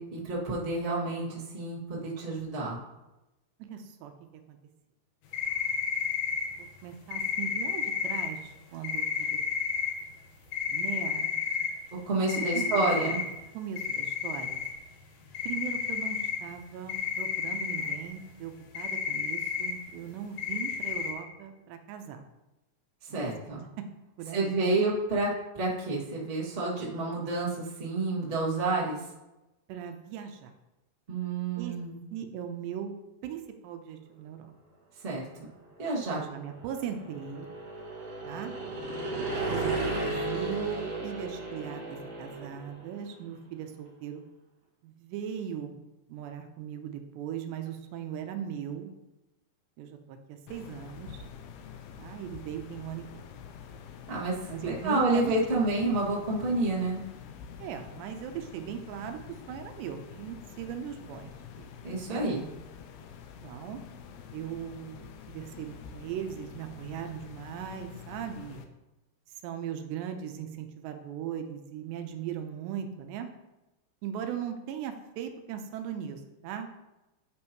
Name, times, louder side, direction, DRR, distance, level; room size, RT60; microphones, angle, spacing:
voice 1, 0.0-2.8 12.0-13.2 23.1-23.6 24.3-25.3 25.5-29.0 31.1-32.0 35.0-35.2 35.8-36.2 54.1-57.0 61.8-62.5, right 2 dB, 30° right, -6 dB, 1.0 m, -29 dB
voice 2, 3.6-4.1 4.5-4.6 6.6-9.4 10.7-11.7 12.3-13.2 13.5-14.6 15.5-22.2 23.1-23.3 23.8-23.9 24.2-24.8 29.7-30.5 31.6-31.7 32.1-32.9 33.2-34.5 36.1-37.5 38.2-38.5 39.3-44.2 44.8-45.8 46.1-48.9 49.8-51.2 52.0-53.2 54.5-55.7 57.6-61.3 61.6-61.7 62.1-62.3 63.4-63.8 64.3-68.6 69.4-73.3 74.0-76.7, right 9 dB, 85° right, 6 dB, 2.9 m, -39 dB
sound 1, 5.3-6.4 7.1-8.3 8.8-9.9 10.5-11.7 12.3-13.2 13.8-14.7 15.0-15.1 15.3-16.4 16.9-17.9 18.7-19.7 20.4-21.1, left 7 dB, 65° left, 2.0 m, -31 dB
sound 2, 36.0-42.9, right 2 dB, 45° right, 3.0 m, -34 dB
sound 3, 50.5-68.6, left 7 dB, 80° left, 2.7 m, -47 dB
9.7 x 8.8 x 3.1 m, 1.0 s
omnidirectional pair, 5.0 m